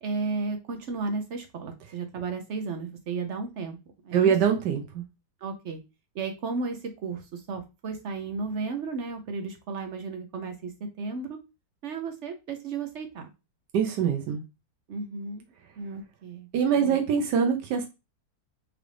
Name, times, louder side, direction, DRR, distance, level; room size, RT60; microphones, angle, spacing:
voice 1, 0.0-4.3 5.4-5.8 6.1-10.7 11.0-11.4 11.8-13.3 14.9-15.5 15.8-16.5 16.8-17.0, right 4 dB, 60° right, 5 dB, 0.8 m, -34 dB
voice 2, 4.1-5.0 13.7-14.4 16.5-17.9, right 7 dB, 90° right, 3 dB, 1.3 m, -23 dB
4.8 x 2.5 x 3.3 m, 0.27 s
omnidirectional pair, 1.8 m